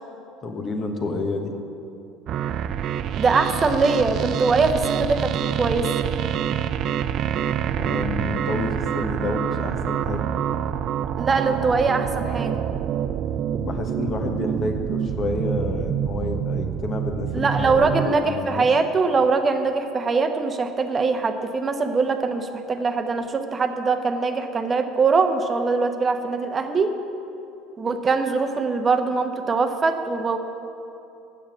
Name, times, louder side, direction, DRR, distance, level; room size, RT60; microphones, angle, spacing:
voice 1, 0.4-1.5 7.7-10.2 13.5-18.7, left 2 dB, 35° left, 4 dB, 1.3 m, -29 dB
sound 1, 2.3-18.1, right 9 dB, 45° right, 0.4 m, -26 dB
voice 2, 3.2-5.3 5.6-5.9 11.2-12.5 17.3-26.9 27.8-30.4, right 4 dB, 30° right, 7 dB, 1.0 m, -22 dB
9.0 x 7.4 x 8.8 m, 2.9 s
figure-of-eight pair, 65°, 0 cm